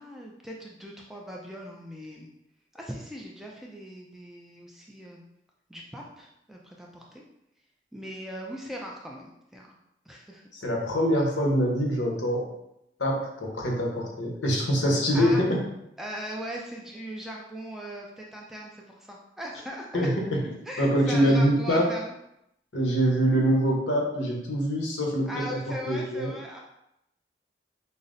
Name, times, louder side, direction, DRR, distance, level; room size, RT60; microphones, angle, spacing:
voice 1, 0.0-2.3 2.7-5.2 5.7-7.2 7.9-9.7 10.1-10.4 15.1-15.4 16.0-20.1 20.7-22.1 25.3-26.6, equal, ahead, -2 dB, 0.3 m, -39 dB
voice 2, 10.5-12.5 13.0-15.6 19.9-20.5 20.8-21.9 22.7-25.6 25.9-26.3, equal, 90° left, -1 dB, 0.9 m, -24 dB
5.4 x 2.0 x 2.5 m, 0.83 s
head